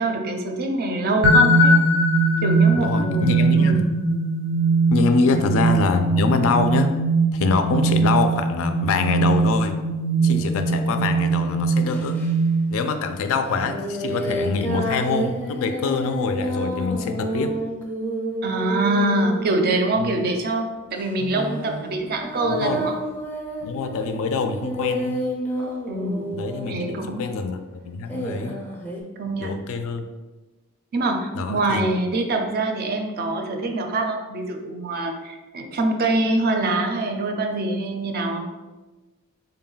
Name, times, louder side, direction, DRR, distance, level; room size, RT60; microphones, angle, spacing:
voice 1, 0.0-1.8 2.4-4.0 5.2-5.4 18.4-22.9 25.9-26.4 26.7-27.3 29.2-29.5 30.9-38.5, right 2 dB, 45° right, 4 dB, 0.4 m, -24 dB
sound 1, 1.2-13.0, right 2 dB, 90° right, 0.6 m, -20 dB
voice 2, 2.7-3.8 4.9-6.9 7.3-9.8 10.2-12.2 12.7-17.6 20.0-20.2 22.4-22.9 23.6-25.2 26.3-28.6 29.4-30.1 31.3-31.8, left 4 dB, 65° left, 8 dB, 0.3 m, -24 dB
sound 2, 10.2-12.3 13.5-20.2 21.0-27.4 28.1-29.0, right 1 dB, 10° left, 0.5 m, -30 dB
3.8 x 2.2 x 3.8 m, 1.2 s
head